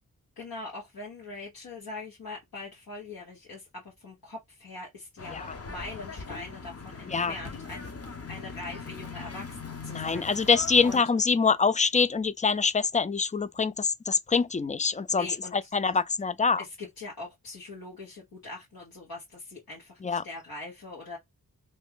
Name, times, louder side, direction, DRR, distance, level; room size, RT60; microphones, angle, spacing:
voice 1, 0.4-7.9 8.3-10.5 10.8-11.0 15.1-15.7 16.6-21.2, left 2 dB, 80° left, 1.6 m, -42 dB
sound 1, 5.2-11.0, left 4 dB, 40° left, 1.0 m, -40 dB
voice 2, 9.9-15.3 15.5-16.6 20.0-20.2, left 5 dB, 20° left, 0.4 m, -25 dB
3.1 x 2.4 x 3.6 m
cardioid pair, 45°, 36 cm